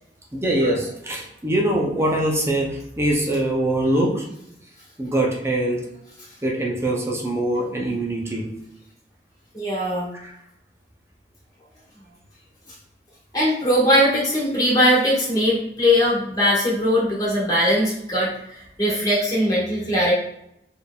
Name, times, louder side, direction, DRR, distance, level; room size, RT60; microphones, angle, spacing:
voice 1, 0.3-4.2 5.0-5.8 6.4-8.5 10.2-10.3, right 1 dB, 15° right, -1 dB, 0.6 m, -23 dB
voice 2, 9.5-10.1 13.3-18.3 18.8-20.1, equal, 20° left, -6 dB, 1.4 m, -20 dB
4.5 x 3.4 x 2.3 m, 0.78 s
head